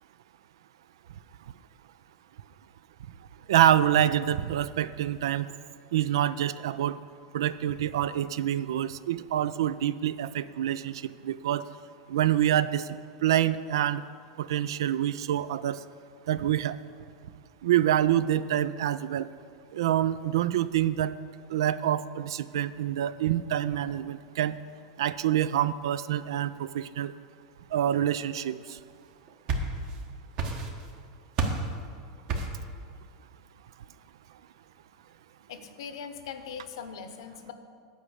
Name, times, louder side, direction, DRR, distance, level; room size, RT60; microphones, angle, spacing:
voice 1, 3.5-5.5 5.9-7.0 7.3-11.6 12.1-12.8 13.2-14.0 14.4-15.8 16.3-16.8 17.6-19.3 19.7-21.1 21.5-24.6 25.0-27.1 27.7-28.6, right 11 dB, 85° right, 16 dB, 0.4 m, -26 dB
sound 1, 29.1-30.0 30.4-31.0 31.4-31.7 32.3-32.7, right 3 dB, 45° right, 1.3 m, -30 dB
voice 2, 35.5-37.5, left 7 dB, 80° left, 8 dB, 0.9 m, -40 dB
9.3 x 5.3 x 7.9 m, 2.1 s
supercardioid pair, 125°, 2 cm